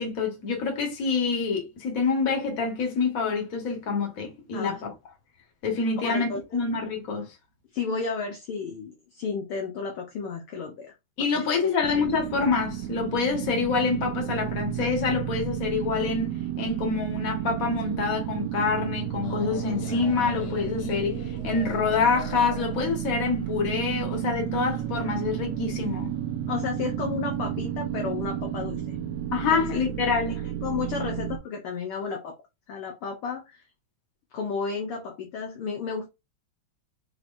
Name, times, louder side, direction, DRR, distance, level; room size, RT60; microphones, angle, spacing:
voice 1, 0.0-4.9 5.6-7.3 11.2-26.1 29.3-30.5, left 5 dB, 40° left, 1.3 m, -26 dB
voice 2, 6.0-6.6 7.7-10.9 11.3-11.8 26.5-29.0 29.5-29.8 30.4-32.4 32.7-33.6 34.3-36.1, left 5 dB, 70° left, 1.3 m, -33 dB
sound 1, 11.8-31.4, right 11 dB, 75° right, 1.9 m, -32 dB
sound 2, 19.2-24.3, left 4 dB, 90° left, 2.5 m, -39 dB
6.1 x 2.8 x 2.6 m
omnidirectional pair, 3.4 m